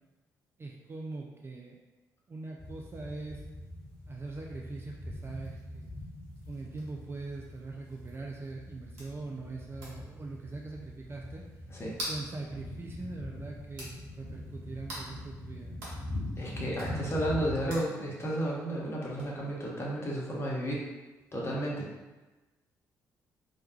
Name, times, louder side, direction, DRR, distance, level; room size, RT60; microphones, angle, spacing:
voice 1, 0.6-1.8 2.3-3.4 4.1-5.9 6.5-11.5 12.1-15.9, right 3 dB, 25° right, 0 dB, 0.3 m, -42 dB
sound 1, 2.6-17.8, left 1 dB, 10° left, 1.2 m, -43 dB
sound 2, 5.1-21.5, equal, 75° right, 0.7 m, -49 dB
voice 2, 16.4-20.9 21.3-21.9, right 1 dB, 30° left, -5 dB, 0.9 m, -32 dB
2.2 x 2.2 x 3.0 m, 1.2 s
figure-of-eight pair, 40°, 9 cm